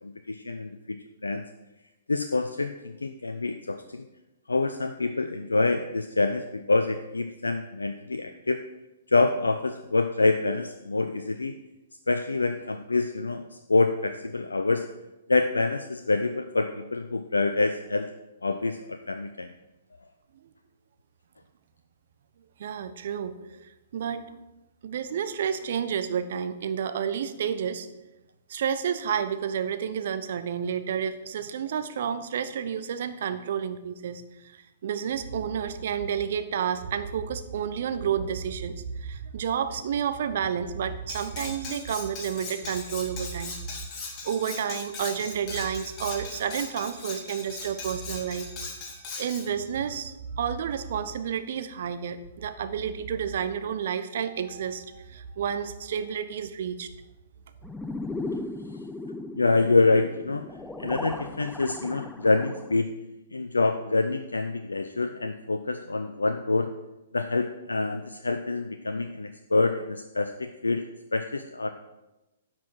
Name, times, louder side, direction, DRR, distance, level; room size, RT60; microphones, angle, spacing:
voice 1, 0.0-1.0 1.2-1.4 2.1-4.0 4.5-8.6 9.1-11.5 12.1-13.4 13.7-14.9 15.3-18.1 18.4-19.5 59.4-60.4 60.8-62.9 63.3-66.7 67.1-70.8 71.1-71.7, left 3 dB, 75° left, 8 dB, 0.5 m, -26 dB
voice 2, 22.6-23.6 23.9-24.3 24.8-27.9 28.5-34.2 34.8-43.6 44.2-48.5 49.2-56.9, right 8 dB, 55° right, 11 dB, 0.8 m, -30 dB
Cutlery silverware, 41.1-49.5, left 4 dB, 25° left, 2.4 m, -39 dB
sound 1, 57.6-62.8, left 2 dB, 5° left, 0.5 m, -37 dB
10.5 x 5.9 x 6.3 m, 1.0 s
figure-of-eight pair, 115°, 0 cm